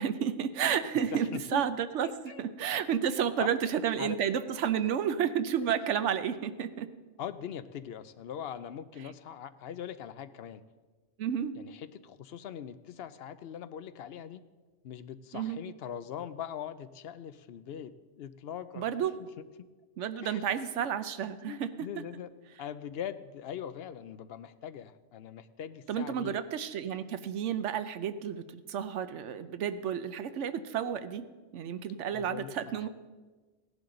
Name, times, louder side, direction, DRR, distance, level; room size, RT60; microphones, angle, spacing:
voice 1, 0.0-2.1 2.4-6.9 11.2-11.5 15.3-15.6 18.7-19.2 20.0-21.7 25.9-31.3 31.5-32.9, right 8 dB, 80° right, 11 dB, 1.0 m, -31 dB
voice 2, 1.3-1.6 2.0-2.4 3.4-3.7 4.0-4.2 5.6-5.7 7.2-10.6 11.6-14.4 14.8-19.3 20.2-20.5 21.3-22.3 22.6-26.4 32.1-32.9, left 9 dB, 65° left, 13 dB, 0.8 m, -42 dB
16.5 x 11.0 x 3.8 m, 1.3 s
omnidirectional pair, 1.2 m